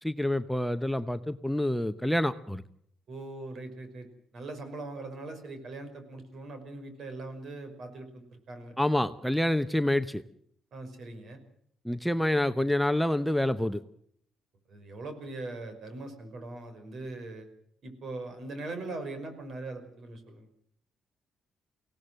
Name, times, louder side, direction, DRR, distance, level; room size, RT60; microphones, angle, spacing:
voice 1, 0.0-2.6 8.8-10.2 11.8-13.8, left 1 dB, ahead, 10 dB, 0.8 m, -27 dB
voice 2, 3.1-4.1 4.3-8.8 10.7-11.4 14.7-17.5 17.8-20.5, right 2 dB, 60° right, 8 dB, 5.5 m, -41 dB
24.0 x 17.5 x 7.7 m, 0.68 s
cardioid pair, 90°, 0 cm